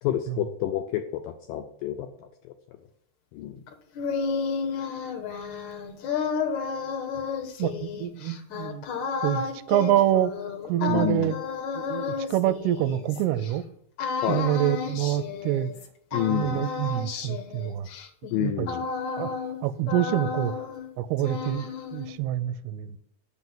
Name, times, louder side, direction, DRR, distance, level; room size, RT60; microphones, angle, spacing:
voice 1, 0.0-2.3 3.3-3.6 10.9-11.3 14.2-14.5 16.1-16.6 18.3-18.8, left 12 dB, 85° left, 1.9 m, -29 dB
sound 1, 3.7-13.5 14.0-15.9 16.1-19.6 19.9-20.9 21.2-22.2, left 5 dB, 70° left, 1.9 m, -32 dB
voice 2, 7.6-8.9 9.2-10.3 10.7-11.4 11.9-13.6 14.3-15.7 16.1-17.9 18.4-18.7 19.2-19.3 19.6-20.5 21.0-23.0, right 12 dB, 90° right, 2.6 m, -26 dB
6.4 x 6.1 x 7.2 m
omnidirectional pair, 4.5 m